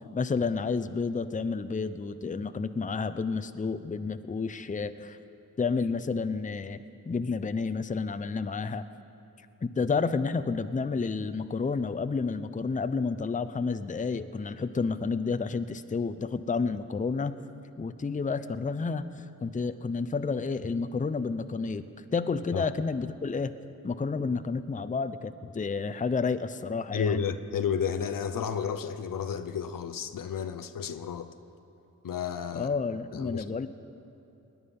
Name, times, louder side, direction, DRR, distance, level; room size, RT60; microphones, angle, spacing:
voice 1, 0.1-5.2 5.6-6.8 7.1-8.9 9.6-17.4 17.8-19.0 19.4-23.5 23.8-27.2 32.5-33.7, left 4 dB, 20° left, 11 dB, 0.6 m, -30 dB
voice 2, 26.9-31.3 32.0-32.7 33.1-33.5, left 7 dB, 60° left, 9 dB, 0.8 m, -32 dB
20.0 x 9.6 x 5.5 m, 2.9 s
supercardioid pair, 45°, 36 cm